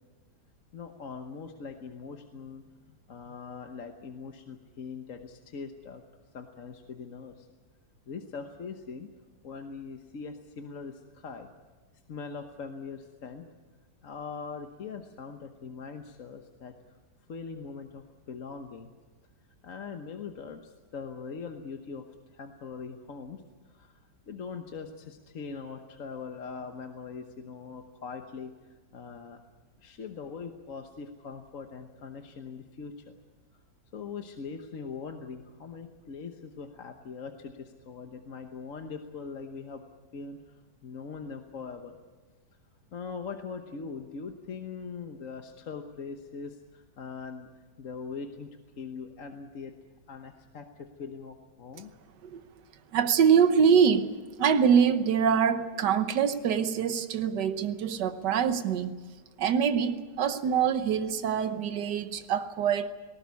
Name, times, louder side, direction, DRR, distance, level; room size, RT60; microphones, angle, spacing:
voice 1, 0.7-6.0 6.3-7.5 8.1-9.1 9.4-11.5 12.1-13.4 14.0-16.7 17.3-18.9 19.6-22.1 22.3-29.4 29.8-33.1 33.9-39.8 40.1-42.0 42.9-47.5 47.8-49.7 50.1-51.9, left 5 dB, 55° left, 1.4 m, -41 dB
voice 2, 52.9-54.1 54.4-59.0 59.4-62.9, right 7 dB, 85° right, 1.6 m, -24 dB
19.5 x 18.5 x 9.5 m
omnidirectional pair, 1.8 m